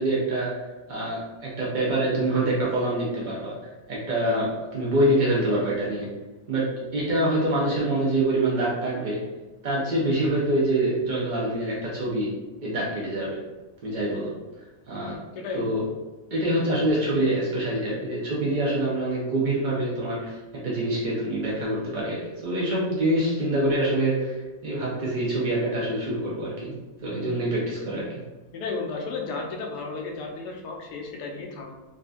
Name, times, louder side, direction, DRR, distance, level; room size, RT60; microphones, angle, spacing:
voice 1, 0.0-3.5 3.9-6.1 6.5-9.2 9.6-12.3 12.6-13.4 13.8-14.3 14.9-15.1 15.5-15.8 16.3-20.4 20.6-26.7 27.0-28.2, right 1 dB, 75° right, -7 dB, 0.4 m, -25 dB
voice 2, 15.3-15.8 28.5-31.7, left 3 dB, 85° left, 1 dB, 1.1 m, -33 dB
3.6 x 2.5 x 2.3 m, 1.1 s
omnidirectional pair, 1.7 m